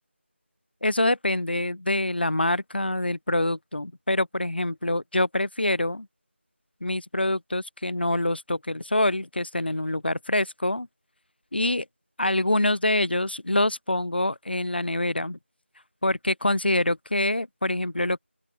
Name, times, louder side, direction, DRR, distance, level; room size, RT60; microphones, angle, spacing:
voice 1, 0.8-6.1 6.8-10.9 11.5-11.8 12.2-15.4 16.0-18.2, left 1 dB, 50° left, 1.5 m, -25 dB
open air
figure-of-eight pair, 175°, 7 cm